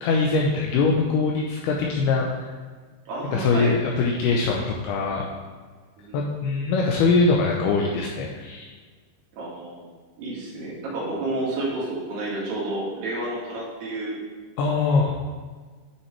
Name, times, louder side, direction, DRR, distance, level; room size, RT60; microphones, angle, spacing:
voice 1, 0.0-2.5 3.3-5.3 6.1-8.7 14.6-15.2, left 4 dB, 80° left, -1 dB, 2.3 m, -22 dB
voice 2, 3.1-3.8 6.0-6.2 9.3-9.9 10.2-14.2, right 2 dB, 70° right, -6 dB, 3.8 m, -30 dB
9.4 x 5.9 x 3.2 m, 1.5 s
omnidirectional pair, 5.1 m